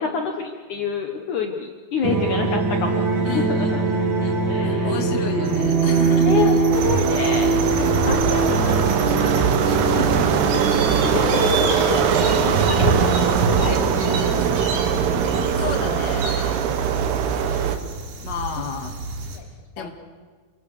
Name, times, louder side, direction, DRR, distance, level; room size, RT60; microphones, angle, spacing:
voice 1, 0.0-3.8 4.5-5.2 6.2-7.5 7.8-9.5 11.0-13.2 13.5-14.6 14.9-16.0 17.0-17.4 19.3-19.5 19.8-19.9, left 6 dB, 60° left, 4 dB, 2.4 m, -29 dB
sound 1, 2.0-15.5, right 4 dB, 35° right, 2.3 m, -23 dB
voice 2, 3.2-6.6 9.6-10.5 11.0-11.4 15.5-16.6 18.2-19.0 19.8-19.9, left 4 dB, 35° left, 4 dB, 2.3 m, -32 dB
sound 2, 5.4-19.4, right 2 dB, 60° right, 4.4 m, -30 dB
sound 3, 6.7-17.8, right 7 dB, 80° right, 3.4 m, -22 dB
29.0 x 24.0 x 6.7 m, 1.5 s
omnidirectional pair, 4.6 m